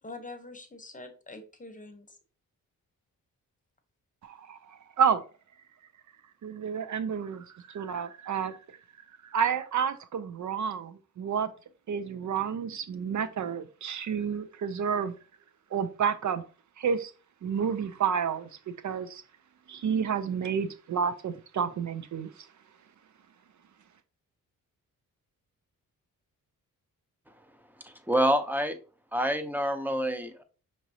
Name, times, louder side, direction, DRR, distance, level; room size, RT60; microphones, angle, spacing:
voice 1, 0.0-2.2, left 2 dB, 25° left, 1.0 m, -45 dB
voice 2, 4.2-4.6 5.0-5.2 6.4-8.6 9.3-11.5 11.9-15.1 15.7-16.4 16.8-17.1 17.4-18.5 18.8-19.2 19.7-22.3, right 7 dB, 60° right, 0.6 m, -30 dB
voice 3, 28.1-28.8 29.1-30.4, right 1 dB, 5° right, 0.7 m, -27 dB
5.8 x 3.1 x 2.8 m
cardioid pair, 75°, 34 cm